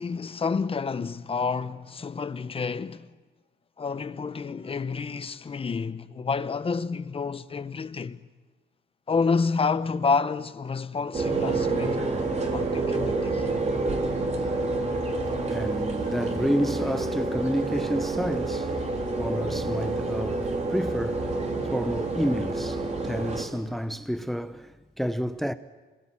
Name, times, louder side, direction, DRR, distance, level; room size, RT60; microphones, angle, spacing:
voice 1, 0.0-3.1 3.8-8.3 9.1-12.0 12.5-13.5, left 5 dB, 30° left, 1.0 m, -29 dB
sound 1, 11.1-23.4, right 3 dB, 35° right, 3.8 m, -28 dB
voice 2, 15.5-25.5, equal, ahead, 0.8 m, -30 dB
26.5 x 20.0 x 8.8 m
cardioid pair, 105°, 19 cm